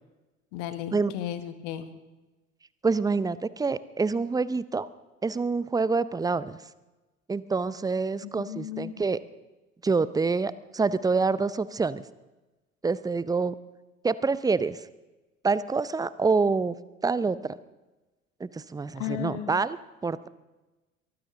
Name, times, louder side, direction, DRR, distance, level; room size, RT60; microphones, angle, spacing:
voice 1, 0.5-1.9 8.2-8.9 19.0-19.5, left 12 dB, 60° left, 12 dB, 1.5 m, -35 dB
voice 2, 2.8-4.9 5.2-6.6 7.3-9.2 9.8-12.0 12.8-13.5 14.0-14.8 15.4-17.6 18.4-19.8 20.0-20.3, right 4 dB, 10° right, 17 dB, 0.6 m, -26 dB
23.0 x 14.5 x 3.8 m, 1.1 s
figure-of-eight pair, 65°, 40 cm